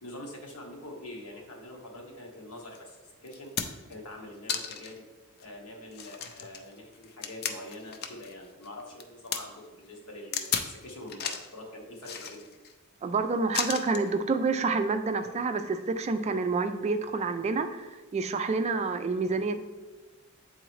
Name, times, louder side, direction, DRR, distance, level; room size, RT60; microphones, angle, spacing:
voice 1, 0.0-5.1 5.4-12.5, left 1 dB, 80° left, -1 dB, 1.2 m, -45 dB
sound 1, 2.7-2.8 3.3-3.9 4.5-5.0 5.4-5.5 5.9-8.3 8.6-9.4 10.3-10.7 11.1-11.5 12.0-12.7 13.5-14.1 15.2-15.3, left 7 dB, 45° left, 0.4 m, -34 dB
voice 2, 13.0-19.6, right 4 dB, 30° right, 9 dB, 0.3 m, -28 dB
7.9 x 3.8 x 3.1 m, 1.2 s
head